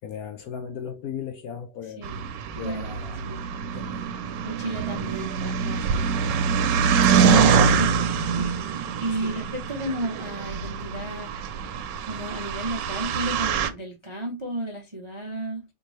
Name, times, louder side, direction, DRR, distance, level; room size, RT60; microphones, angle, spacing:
voice 1, 0.0-2.1 2.5-3.3 3.7-4.0 6.2-6.5 9.1-9.4, left 8 dB, 70° left, 0.9 m, -37 dB
sound 1, 2.0-13.7, right 6 dB, 85° right, 1.3 m, -24 dB
voice 2, 2.6-3.0 3.2-3.4 4.4-6.0 6.9-11.7 12.0-15.6, right 1 dB, 35° right, 0.5 m, -33 dB
4.4 x 2.6 x 3.1 m
omnidirectional pair, 1.9 m